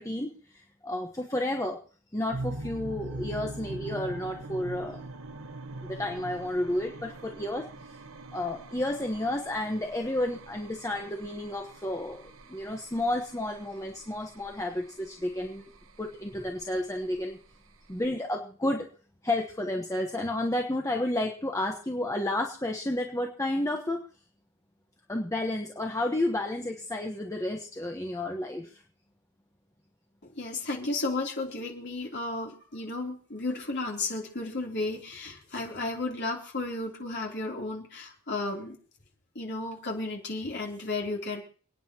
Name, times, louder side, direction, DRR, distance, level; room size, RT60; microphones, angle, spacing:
voice 1, 0.0-1.8 2.1-5.0 5.8-7.7 8.3-15.7 16.0-17.4 17.9-18.9 19.2-24.0 25.1-28.7, left 1 dB, 15° left, 2 dB, 1.1 m, -31 dB
sound 1, 2.3-18.1, right 2 dB, 70° right, 1.2 m, -43 dB
voice 2, 30.2-38.8 39.3-41.4, left 2 dB, 55° left, -1 dB, 3.3 m, -33 dB
28.5 x 9.6 x 2.9 m, 0.41 s
head